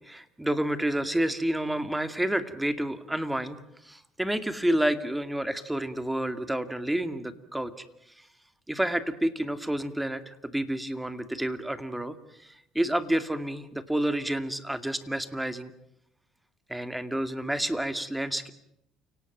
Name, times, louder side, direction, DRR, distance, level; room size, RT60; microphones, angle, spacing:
voice 1, 0.0-3.6 3.8-7.9 8.7-12.2 12.4-15.7 16.7-18.5, right 1 dB, 5° right, 10 dB, 2.3 m, -29 dB
29.5 x 18.5 x 9.1 m, 0.78 s
supercardioid pair, 90°, 0 cm